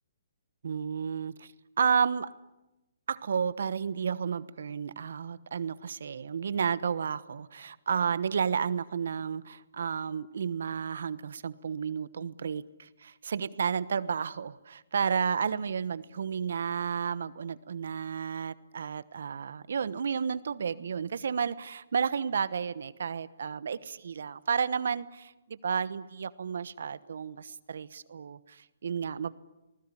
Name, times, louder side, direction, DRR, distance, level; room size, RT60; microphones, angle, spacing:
voice 1, 0.6-1.5 1.8-2.3 3.1-29.3, right 6 dB, 70° right, 17 dB, 1.1 m, -32 dB
28.0 x 20.0 x 10.0 m, 1.0 s
hypercardioid pair, 140°, 0 cm